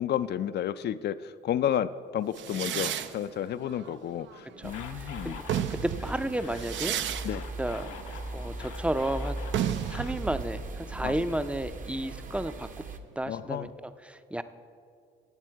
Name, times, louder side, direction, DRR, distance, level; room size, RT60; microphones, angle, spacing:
voice 1, 0.0-5.4 7.2-7.5 11.0-11.2 13.3-13.7, left 10 dB, 55° left, 13 dB, 0.4 m, -31 dB
sound 1, 2.3-4.8 5.3-12.8, right 10 dB, 70° right, 0.5 m, -35 dB
sound 2, 4.6-10.1, left 6 dB, 85° left, 0.9 m, -47 dB
sound 3, 4.6-13.0, right 2 dB, 40° right, 0.9 m, -39 dB
voice 2, 5.0-5.4 5.8-7.0 7.6-7.9 8.3-9.3 9.9-12.8 13.2-14.4, right 1 dB, 5° right, 11 dB, 0.5 m, -32 dB
16.5 x 8.2 x 4.6 m, 2.4 s
cardioid pair, 90°, 20 cm